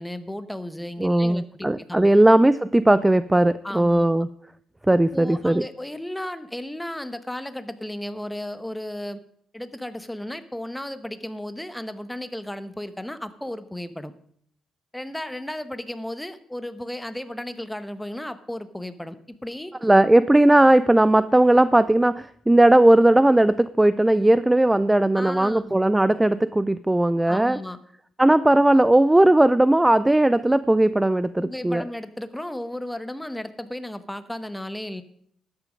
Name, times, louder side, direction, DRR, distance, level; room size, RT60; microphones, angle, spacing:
voice 1, 0.0-2.1 3.6-4.3 5.1-9.2 9.5-14.1 14.9-19.7 25.1-25.7 27.3-27.8 31.4-35.0, left 1 dB, 5° left, 11 dB, 1.0 m, -34 dB
voice 2, 1.0-4.3 4.9-5.6 19.8-27.6 28.2-31.8, right 1 dB, 10° right, 16 dB, 0.4 m, -18 dB
13.0 x 9.6 x 5.1 m, 0.66 s
cardioid pair, 90°, 0 cm